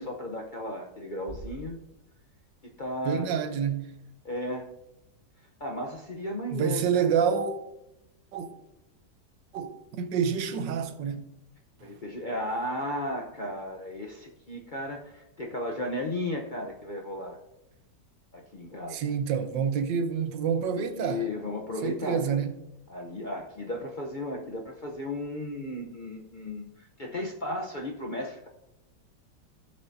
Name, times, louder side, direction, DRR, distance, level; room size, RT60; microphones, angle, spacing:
voice 1, 0.0-1.8 2.6-3.3 4.2-4.7 5.6-7.1 11.8-17.4 18.3-19.0 20.6-22.4 22.9-28.5, left 1 dB, 45° left, 0.6 m, -35 dB
Bass drum, 1.3-3.0, right 1 dB, 45° right, 0.5 m, -46 dB
voice 2, 3.0-3.9 6.5-7.5 8.3-8.5 9.5-11.2 18.9-21.3 21.8-22.5, right 7 dB, 90° right, 1.4 m, -28 dB
15.0 x 6.8 x 2.7 m
omnidirectional pair, 1.9 m